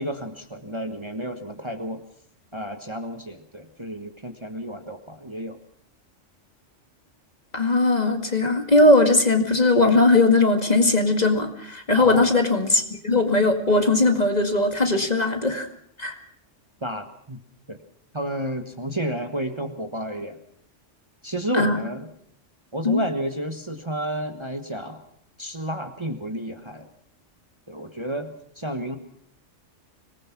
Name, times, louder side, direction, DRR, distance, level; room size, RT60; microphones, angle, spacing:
voice 1, 0.0-2.0 2.5-5.6 12.0-12.3 16.8-17.4 17.7-17.8 18.1-20.4 21.2-22.1 22.7-25.0 25.4-26.9 27.7-29.0, right 1 dB, 25° right, 6 dB, 1.4 m, -31 dB
voice 2, 7.5-15.7 16.0-16.2 21.5-21.8 22.8-23.0, left 2 dB, 35° left, 5 dB, 2.2 m, -19 dB
25.5 x 19.0 x 6.1 m, 0.66 s
omnidirectional pair, 1.3 m